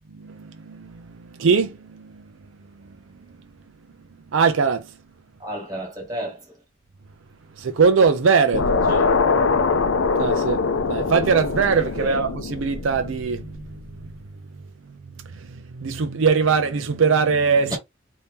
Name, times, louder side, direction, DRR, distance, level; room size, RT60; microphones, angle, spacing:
voice 1, 0.1-1.1 1.3-2.2 4.3-4.9 7.6-8.9 10.2-10.6 10.9-13.8 15.1-17.8, right 5 dB, 75° right, 0.5 m, -21 dB
voice 2, 5.4-6.6 8.9-9.2 12.0-12.2 17.7-17.8, right 1 dB, 20° right, 1.6 m, -31 dB
sound 1, 8.5-13.8, left 4 dB, 75° left, 0.5 m, -23 dB
2.8 x 2.7 x 3.5 m
head